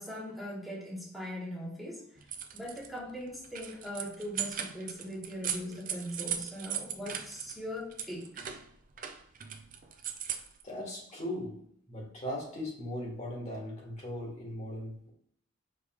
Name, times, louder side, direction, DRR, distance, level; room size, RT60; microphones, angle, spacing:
voice 1, 0.0-2.2 2.5-8.5, equal, ahead, -6 dB, 1.3 m, -40 dB
sound 1, 2.2-2.9 3.3-7.6 7.9-10.6, right 9 dB, 45° right, 0.5 m, -38 dB
voice 2, 10.6-15.1, left 1 dB, 35° left, -2 dB, 1.6 m, -39 dB
5.2 x 3.2 x 2.9 m, 0.67 s
head